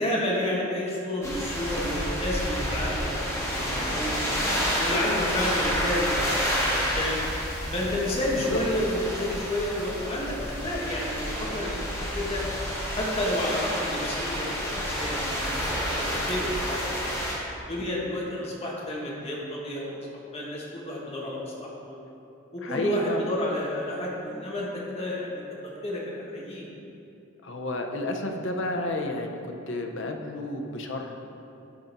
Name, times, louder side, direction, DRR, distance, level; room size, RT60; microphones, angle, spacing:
voice 1, 0.0-4.3 4.8-7.2 7.7-11.8 12.1-12.4 12.9-15.4 16.1-17.2 17.7-20.1 20.3-22.0 22.5-25.4 25.8-26.6, left 1 dB, 30° left, -4 dB, 1.3 m, -30 dB
sound 1, 1.2-17.3, equal, 15° left, 1.6 m, -29 dB
voice 2, 22.6-23.2 27.4-29.4 29.7-31.1, left 2 dB, 60° left, 3 dB, 0.7 m, -31 dB
11.5 x 3.9 x 4.0 m, 2.8 s
head